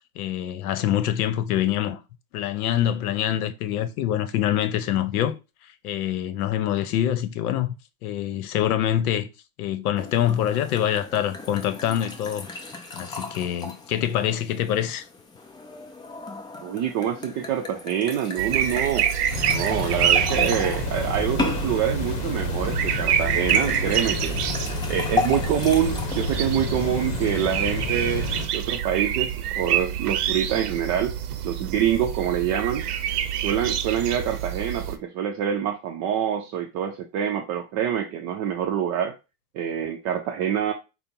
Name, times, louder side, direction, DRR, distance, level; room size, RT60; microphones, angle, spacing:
voice 1, 0.2-2.0 2.3-5.4 5.8-7.7 8.0-9.3 9.6-12.5 12.9-15.0, left 11 dB, 75° left, 0.8 m, -25 dB
sound 1, 10.0-26.4, left 4 dB, 10° left, 0.4 m, -35 dB
voice 2, 16.6-19.1 19.5-24.4 24.7-31.1 31.4-32.9 33.3-39.1 39.5-40.7, right 9 dB, 40° right, 0.5 m, -26 dB
sound 2, 18.4-35.0, right 10 dB, 85° right, 0.7 m, -27 dB
sound 3, 19.3-28.5, left 5 dB, 40° left, 1.0 m, -31 dB
5.0 x 2.1 x 4.4 m
supercardioid pair, 120°, 45 cm